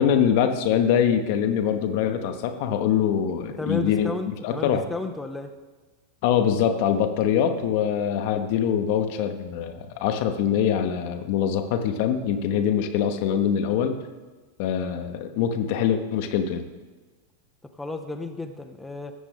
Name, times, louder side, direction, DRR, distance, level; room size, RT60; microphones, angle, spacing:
voice 1, 0.0-4.1 4.4-4.8 6.2-13.9 14.6-16.6, left 8 dB, 50° left, 7 dB, 1.0 m, -23 dB
voice 2, 3.6-5.5 17.8-19.1, left 2 dB, 5° left, 5 dB, 0.6 m, -32 dB
17.5 x 7.3 x 3.5 m, 1.3 s
figure-of-eight pair, 90°, 0 cm